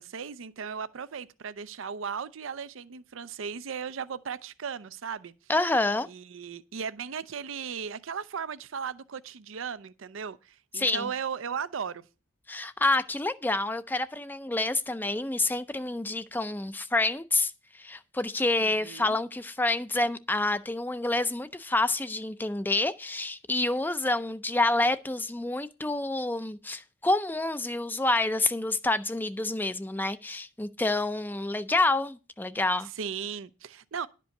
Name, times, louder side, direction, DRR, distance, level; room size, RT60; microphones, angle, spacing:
voice 1, 0.0-5.3 6.1-12.0 18.6-19.2 32.9-34.1, right 6 dB, 65° right, 0.5 m, -36 dB
voice 2, 5.5-6.1 10.7-11.1 12.5-32.9, left 2 dB, 10° left, 0.5 m, -28 dB
11.0 x 5.3 x 6.5 m
head